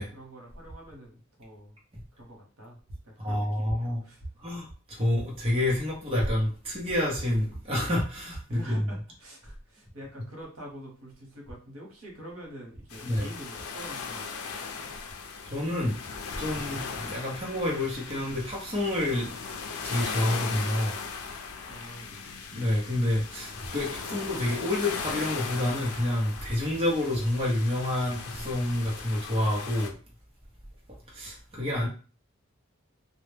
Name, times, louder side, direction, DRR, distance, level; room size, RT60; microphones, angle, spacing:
voice 1, 0.1-1.8 2.1-2.8 3.0-4.2 8.5-14.9 21.7-22.4, equal, 80° right, -1 dB, 0.9 m, -46 dB
voice 2, 3.2-4.0 4.4-9.0 13.0-13.3 15.4-16.0 16.4-19.4 19.8-21.0 22.5-29.9 31.1-31.9, left 1 dB, 25° right, -4 dB, 0.6 m, -28 dB
sound 1, 12.9-29.9, left 5 dB, 85° left, 0.4 m, -38 dB
2.1 x 2.0 x 3.1 m, 0.38 s
head